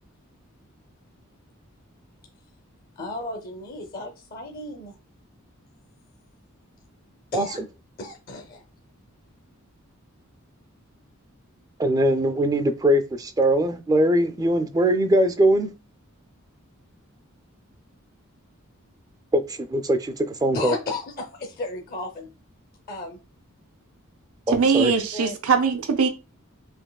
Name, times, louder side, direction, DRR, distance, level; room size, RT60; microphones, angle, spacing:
voice 1, 3.0-4.9 7.3-7.6 8.0-8.6 20.5-22.3 22.9-23.2 24.7-25.4, left 2 dB, 45° left, 0.7 m, -34 dB
voice 2, 7.3-7.7 11.8-15.7 19.3-20.7 24.5-24.9, right 1 dB, 15° right, 0.4 m, -21 dB
voice 3, 24.5-26.1, right 5 dB, 90° right, 0.6 m, -21 dB
5.2 x 2.9 x 2.3 m
head